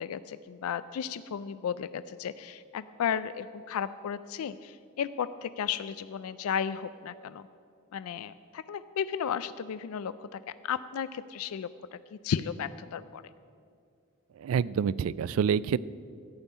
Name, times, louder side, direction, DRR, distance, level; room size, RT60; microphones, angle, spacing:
voice 1, 0.0-7.4 7.9-12.0 12.2-13.2, left 7 dB, 80° left, 14 dB, 0.4 m, -34 dB
voice 2, 14.4-15.8, right 7 dB, 70° right, 20 dB, 0.3 m, -27 dB
14.0 x 5.5 x 9.1 m, 2.3 s
head